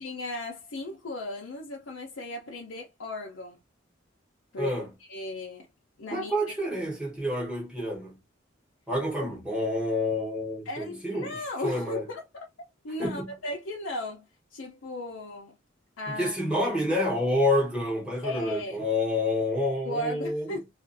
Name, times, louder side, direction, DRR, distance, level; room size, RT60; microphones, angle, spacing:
voice 1, 0.0-3.6 4.5-4.8 5.1-5.7 6.0-6.3 10.7-12.5 12.8-15.6 16.0-16.4 18.2-18.8 19.8-20.7, left 2 dB, 90° left, 0.6 m, -36 dB
voice 2, 4.6-4.9 6.1-8.2 8.9-11.4 11.6-12.0 13.0-13.3 16.1-20.5, left 1 dB, 5° right, 1.0 m, -28 dB
2.5 x 2.4 x 2.5 m
head